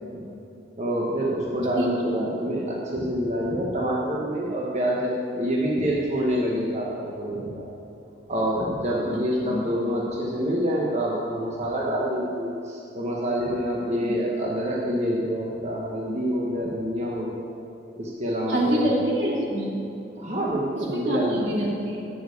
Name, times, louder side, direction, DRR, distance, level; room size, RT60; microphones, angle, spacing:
voice 1, 0.8-7.7 8.3-17.5 18.0-19.0 20.2-21.6, equal, 40° right, -4 dB, 1.3 m, -27 dB
voice 2, 1.8-2.2 9.4-9.6 14.0-14.1 18.5-19.8 20.7-22.0, right 1 dB, 75° right, -3 dB, 2.8 m, -26 dB
9.3 x 8.3 x 8.4 m, 2.8 s
head